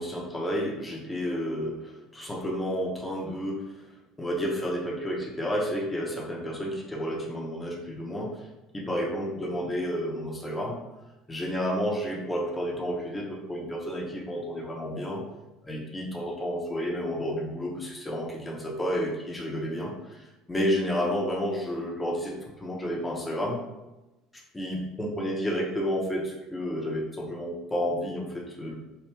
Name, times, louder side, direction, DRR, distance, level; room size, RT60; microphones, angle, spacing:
voice 1, 0.0-3.9 4.2-8.3 8.7-10.8 11.3-15.2 15.6-19.9 20.5-23.6 24.3-28.7, equal, 15° left, -2 dB, 0.9 m, -31 dB
3.4 x 2.3 x 3.2 m, 1.0 s
hypercardioid pair, 65°, 0 cm